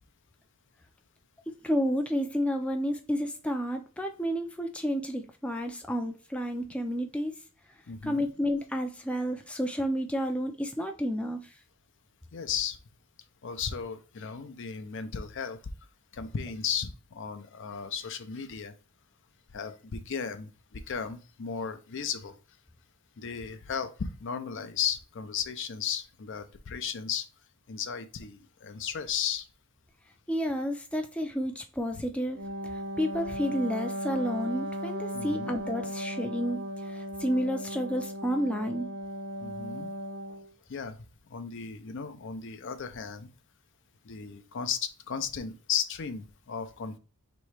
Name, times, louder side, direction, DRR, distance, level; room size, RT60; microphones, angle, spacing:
voice 1, 1.6-7.3 8.0-11.5 30.3-32.4 32.7-38.9, equal, 5° left, 0.4 m, -31 dB
voice 2, 7.9-8.2 12.3-12.8 13.4-15.6 16.1-18.7 19.5-22.3 23.2-27.3 27.7-29.5 31.9-32.0 35.1-35.5 39.4-39.9 40.3-40.4 40.7-41.0 41.3-43.3 44.0-47.0, left 7 dB, 55° left, 0.5 m, -35 dB
Wind instrument woodwind instrument, 32.3-40.5, equal, 70° right, 0.9 m, -36 dB
3.2 x 3.0 x 4.6 m
head